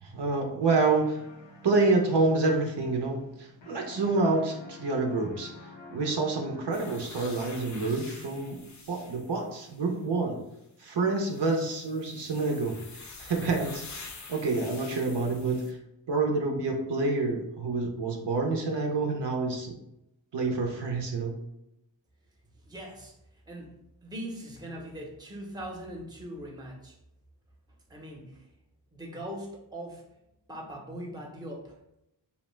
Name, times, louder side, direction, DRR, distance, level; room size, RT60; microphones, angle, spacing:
voice 1, 0.0-1.2 1.6-5.5 5.9-10.4 10.8-15.8 16.1-19.7 20.3-21.3, right 3 dB, 65° right, 2 dB, 0.6 m, -28 dB
sound 1, 0.6-3.4 3.6-7.2, left 3 dB, 85° left, 0.7 m, -49 dB
sound 2, 6.7-10.0 11.2-15.7, left 3 dB, 40° left, 0.5 m, -47 dB
voice 2, 22.6-23.2 23.5-27.0 27.9-28.5 28.9-30.0 30.5-31.8, right 1 dB, 10° right, 0 dB, 0.6 m, -41 dB
2.7 x 2.1 x 3.1 m, 0.84 s
wide cardioid pair, 55°, 45 cm